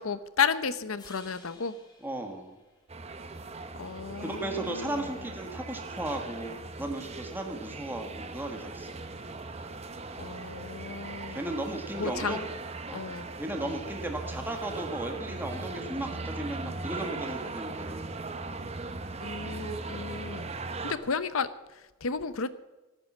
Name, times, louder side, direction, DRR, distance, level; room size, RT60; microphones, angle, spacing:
voice 1, 0.0-1.8 3.8-5.2 10.2-11.5 12.0-12.4 12.9-13.3 13.6-13.7 19.2-20.5 20.8-22.5, left 5 dB, 90° left, 14 dB, 0.9 m, -33 dB
sound 1, 1.0-3.3, left 3 dB, 20° left, 3.2 m, -56 dB
voice 2, 2.0-2.6 4.2-9.0 11.3-12.5 12.9-13.0 13.4-18.1, right 1 dB, 10° right, 3 dB, 1.4 m, -36 dB
sound 2, 2.9-20.9, right 3 dB, 30° right, 0.9 m, -39 dB
17.0 x 9.1 x 7.3 m, 1.1 s
head